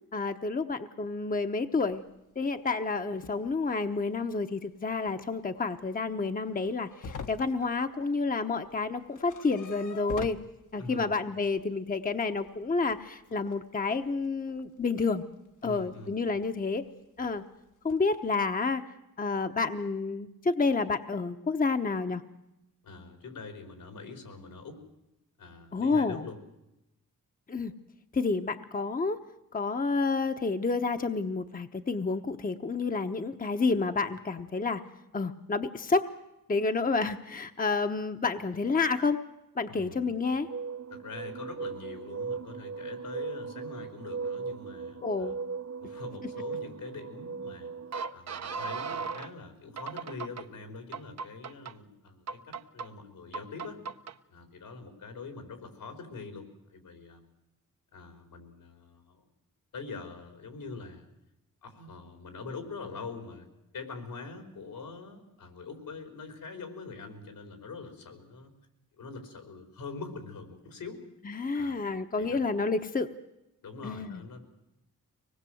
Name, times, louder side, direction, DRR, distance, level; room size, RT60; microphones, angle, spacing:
voice 1, 0.1-2.0 2.4-10.4 10.7-15.2 15.6-16.8 17.2-17.4 17.8-18.8 19.2-22.2 25.7-26.2 27.5-27.7 28.1-29.2 29.5-34.8 35.1-36.1 36.5-39.2 39.6-40.5 45.0-45.4 71.3-73.1 73.8-74.2, left 4 dB, 25° left, 7 dB, 1.0 m, -29 dB
sound 1, 1.9-2.2 2.8-2.9 3.2-3.8 4.1-4.2 4.5-4.6 5.0-5.3 5.6-8.4 8.6-11.0 11.6-13.6 13.9-15.0 15.5-16.3 16.6-17.0 17.3-17.6 17.9-18.3, left 5 dB, 65° left, 1.3 m, -46 dB
voice 2, 10.8-11.1 15.6-16.2 22.8-24.8 25.4-26.4 39.7-40.1 40.9-45.4 45.8-47.7 48.1-53.8 54.3-57.2 57.9-59.2 59.7-61.1 61.6-63.5 63.7-68.5 69.0-71.0 71.5-71.8 72.2-72.5 73.6-74.4, left 4 dB, 85° left, 6 dB, 4.5 m, -44 dB
sound 2, 40.3-49.3 49.8-50.4 50.9-51.7 52.3-52.9 53.3-54.1, right 5 dB, 50° right, 0.8 m, -38 dB
24.5 x 20.0 x 7.8 m, 0.90 s
cardioid pair, 95°, 33 cm